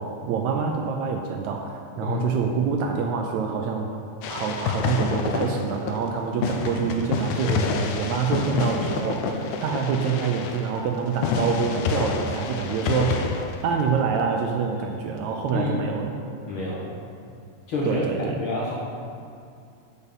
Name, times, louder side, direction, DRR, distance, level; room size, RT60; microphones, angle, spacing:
voice 1, 0.0-3.9 4.3-13.3 13.6-16.1 17.9-18.4, right 6 dB, 75° right, 2 dB, 1.8 m, -26 dB
voice 2, 2.0-2.3 15.5-15.9 16.5-17.0 17.7-18.1 18.4-18.7, left 2 dB, 60° left, -5 dB, 1.4 m, -28 dB
sound 1, 4.2-6.1 6.4-14.2, left 5 dB, 80° left, 2.2 m, -28 dB
8.1 x 6.8 x 7.3 m, 2.4 s
omnidirectional pair, 3.7 m